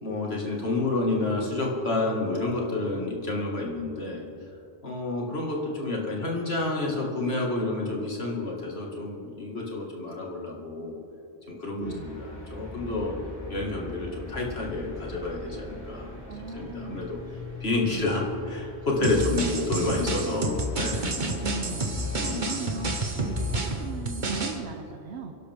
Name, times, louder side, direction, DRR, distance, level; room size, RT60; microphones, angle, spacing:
voice 1, 0.0-4.2 4.8-10.9 11.5-13.1 13.5-16.1 16.5-17.2 17.6-21.1 22.2-22.5, left 2 dB, 65° left, -2 dB, 2.4 m, -29 dB
voice 2, 11.7-12.1 16.3-17.0 17.9-18.1 19.0-19.3 21.1-21.9 22.2-25.4, right 4 dB, 75° right, 5 dB, 1.1 m, -38 dB
sound 1, 11.8-23.9, left 3 dB, 15° left, 4.1 m, -41 dB
sound 2, 19.0-24.6, right 2 dB, 45° right, 1.4 m, -30 dB
24.5 x 11.5 x 3.6 m, 3.0 s
omnidirectional pair, 1.1 m